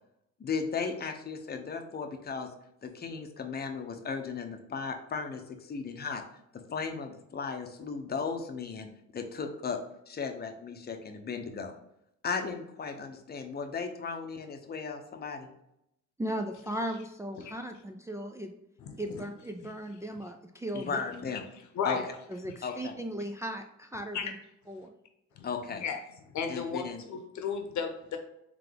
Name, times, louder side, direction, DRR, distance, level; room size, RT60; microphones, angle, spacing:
voice 1, 0.4-2.5 2.8-5.4 5.7-6.2 6.7-8.9 9.1-9.8 10.1-11.7 12.2-15.5 20.7-21.4 21.8-22.0 22.6-23.0 25.4-25.8 26.5-27.0, left 5 dB, 30° left, 5 dB, 0.7 m, -36 dB
voice 2, 16.2-18.5 19.0-21.0 22.3-24.4 24.7-24.9, right 1 dB, 10° right, 4 dB, 0.3 m, -37 dB
voice 3, 18.9-19.2 21.7-22.0 24.1-24.3 25.4-25.5 25.8-26.0 26.3-28.2, left 6 dB, 70° left, 5 dB, 0.9 m, -34 dB
3.7 x 3.3 x 3.4 m, 0.79 s
cardioid pair, 90°, 30 cm